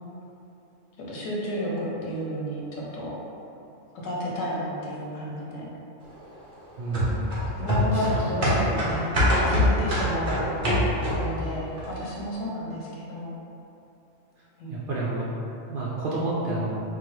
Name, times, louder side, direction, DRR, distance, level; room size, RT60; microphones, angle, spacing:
voice 1, 1.1-3.1 3.9-5.7 7.6-9.1 9.4-10.4 11.2-13.4 14.6-14.9, equal, 85° left, -5 dB, 1.2 m, -31 dB
voice 2, 6.8-7.4 7.9-8.1 8.5-8.7 14.7-15.3 15.7-16.8, right 2 dB, 60° right, -6 dB, 0.5 m, -29 dB
sound 1, 6.9-11.4 11.8-11.9, left 1 dB, 45° right, 0.9 m, -24 dB
3.8 x 2.8 x 3.1 m, 2.8 s
omnidirectional pair, 1.3 m